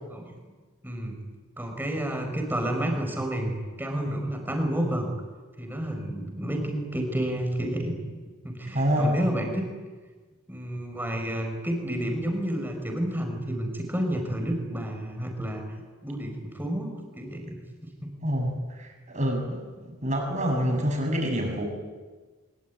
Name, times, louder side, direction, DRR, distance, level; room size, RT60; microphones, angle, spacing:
voice 1, 0.8-1.2 1.6-5.1 5.6-8.0 8.4-9.6 10.5-15.6 16.0-17.6 18.0-18.1, right 1 dB, 10° right, 3 dB, 5.7 m, -30 dB
voice 2, 8.7-9.1 18.2-18.5 18.8-21.7, equal, 35° right, 2 dB, 7.4 m, -26 dB
24.5 x 23.5 x 9.7 m, 1.4 s
head